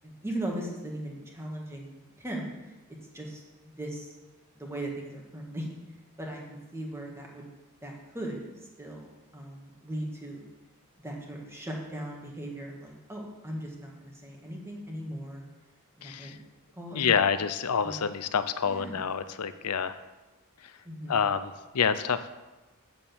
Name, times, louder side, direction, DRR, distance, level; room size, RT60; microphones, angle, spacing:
voice 1, 0.0-1.9 2.2-2.5 3.1-4.1 4.6-5.7 6.2-7.5 7.8-8.4 8.8-9.1 9.3-10.4 11.0-15.4 16.0-16.4 16.8-17.2 17.8-18.0 18.6-19.0 20.8-21.2, right 1 dB, 10° right, -1 dB, 1.9 m, -38 dB
voice 2, 16.0-16.4 16.9-20.0 21.1-22.3, left 7 dB, 90° left, 12 dB, 0.6 m, -27 dB
8.2 x 7.1 x 7.0 m, 1.1 s
head